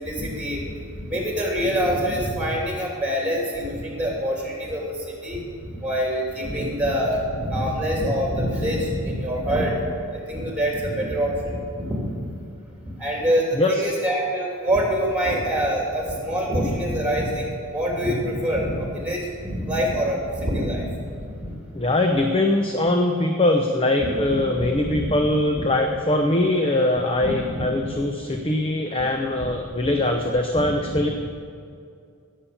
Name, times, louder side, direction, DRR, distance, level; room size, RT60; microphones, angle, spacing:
voice 1, 0.0-5.4 5.7-9.7 10.1-12.1 12.8-20.9 21.4-21.5 24.0-24.1 24.6-25.1 25.6-25.7 27.2-27.7 29.3-29.4 29.8-29.9 30.5-31.1, equal, 5° right, -1 dB, 3.1 m, -25 dB
voice 2, 21.7-31.1, left 1 dB, 25° left, 4 dB, 0.8 m, -22 dB
17.0 x 7.4 x 7.0 m, 2.3 s
head